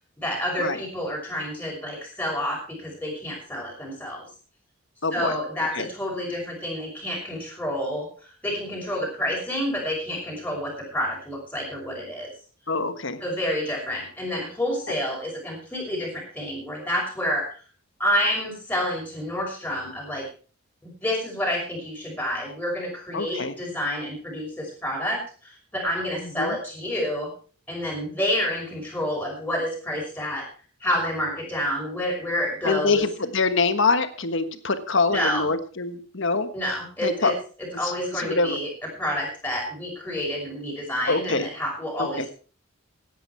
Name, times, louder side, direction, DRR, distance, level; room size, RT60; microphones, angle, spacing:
voice 1, 0.2-4.2 5.1-8.1 8.4-12.3 13.2-17.5 18.0-20.2 20.8-27.3 27.7-30.5 30.8-33.0 35.1-35.5 36.5-37.3 37.8-38.7 39.0-42.3, equal, 10° left, -2 dB, 5.9 m, -29 dB
voice 2, 5.0-5.3 5.7-5.9 12.7-13.2 23.1-23.5 26.2-26.6 32.6-36.5 37.0-37.3 37.8-38.6 41.1-41.5 42.0-42.3, left 3 dB, 60° left, 10 dB, 1.4 m, -25 dB
17.0 x 10.0 x 4.5 m, 0.39 s
head